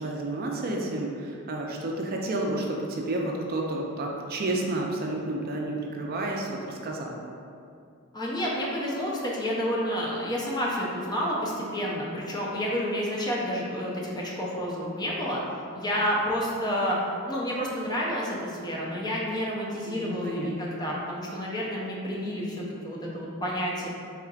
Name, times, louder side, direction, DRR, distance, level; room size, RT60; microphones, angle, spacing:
voice 1, 0.0-7.2 19.9-20.5, right 2 dB, 45° right, -1 dB, 0.4 m, -31 dB
voice 2, 8.1-15.4 15.7-17.0 17.3-23.9, equal, 20° left, -4 dB, 0.6 m, -30 dB
4.4 x 3.6 x 2.4 m, 2.4 s
head